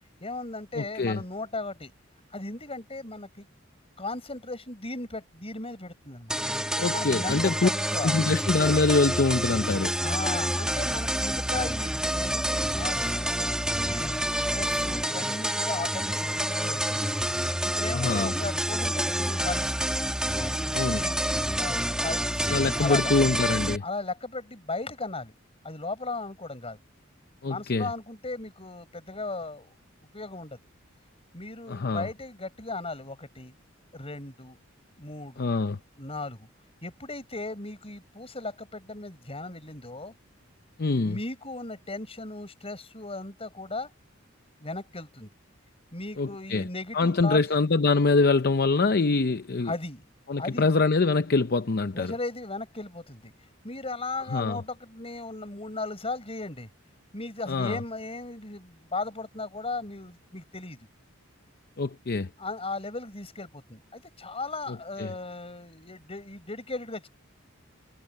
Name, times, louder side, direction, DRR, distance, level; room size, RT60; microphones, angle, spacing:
voice 1, 0.2-1.9 2.3-3.5 4.0-6.4 6.9-8.2 10.0-13.5 13.8-17.1 17.6-19.7 20.3-20.6 21.0-21.3 21.6-23.1 23.8-25.3 25.6-26.8 27.5-29.7 30.1-30.6 31.3-33.5 33.9-34.6 35.0-35.5 36.0-36.5 36.8-40.1 41.0-43.9 44.6-45.3 45.9-47.4 49.6-50.0 50.4-50.7 51.9-53.3 53.6-56.7 57.1-60.9 62.4-67.1, left 3 dB, 30° left, 5.7 m, -36 dB
voice 2, 0.7-1.2 6.8-7.7 8.0-10.0 17.9-18.3 20.7-21.0 22.5-23.8 27.4-27.9 31.7-32.1 35.4-35.8 40.8-41.2 46.2-46.7 46.9-49.7 50.3-52.1 54.3-54.6 57.5-57.8 61.8-62.3 65.0-65.1, left 3 dB, 50° left, 0.7 m, -24 dB
sound 1, 6.3-23.8, right 1 dB, 5° right, 1.8 m, -28 dB
head